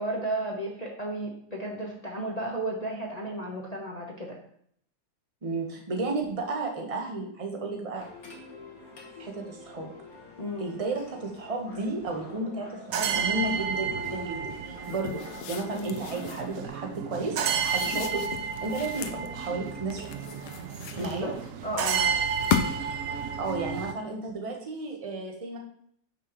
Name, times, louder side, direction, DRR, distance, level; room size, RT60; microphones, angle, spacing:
voice 1, 0.0-4.4 10.4-10.7 15.7-16.0 21.0-21.3 21.6-22.1, right 1 dB, 30° left, -2 dB, 0.8 m, -33 dB
voice 2, 5.4-8.1 9.2-9.9 10.6-15.2 15.5-18.2 18.6-20.1 20.9-21.3 23.4-25.6, right 2 dB, 20° right, 2 dB, 0.9 m, -33 dB
sound 1, 8.0-16.7, left 3 dB, 50° left, 1.9 m, -47 dB
sound 2, 12.9-23.9, right 6 dB, 75° right, 0.7 m, -32 dB
sound 3, 14.8-16.5 17.4-19.3 19.9-21.5 22.2-23.0, left 8 dB, 70° left, 1.1 m, -34 dB
9.4 x 5.9 x 3.1 m, 0.66 s
omnidirectional pair, 2.1 m